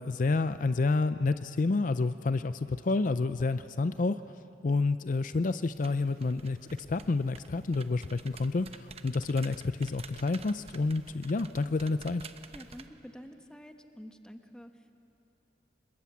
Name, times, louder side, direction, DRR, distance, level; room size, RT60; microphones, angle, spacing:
voice 1, 0.0-4.2 4.6-12.2, left 3 dB, 50° left, 12 dB, 0.5 m, -29 dB
sound 1, 5.7-12.9, right 5 dB, 35° right, 0.9 m, -51 dB
voice 2, 12.5-15.0, equal, 5° left, 6 dB, 1.1 m, -49 dB
26.0 x 21.5 x 8.4 m, 2.9 s
head